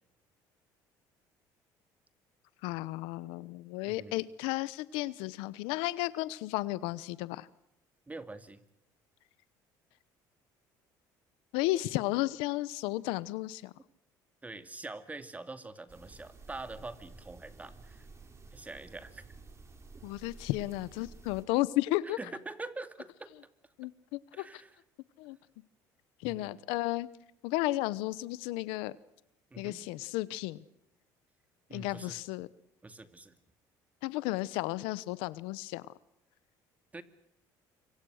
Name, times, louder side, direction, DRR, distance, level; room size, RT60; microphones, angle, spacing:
voice 1, 2.6-7.5 11.5-13.7 20.0-22.2 23.8-24.4 25.2-25.4 26.2-27.1 27.4-29.0 29.6-30.6 31.7-32.5 34.0-35.9, left 18 dB, 85° left, 0.9 m, -33 dB
voice 2, 3.9-4.2 8.1-8.6 14.4-18.1 18.5-19.2 22.0-23.3 24.3-24.8 26.3-26.5 29.5-29.8 31.7-32.2 32.8-33.4 36.9-37.0, right 2 dB, 15° right, 2.4 m, -44 dB
sound 1, 15.9-21.4, right 3 dB, 30° right, 5.6 m, -52 dB
26.0 x 25.0 x 6.5 m
supercardioid pair, 90°, 9 cm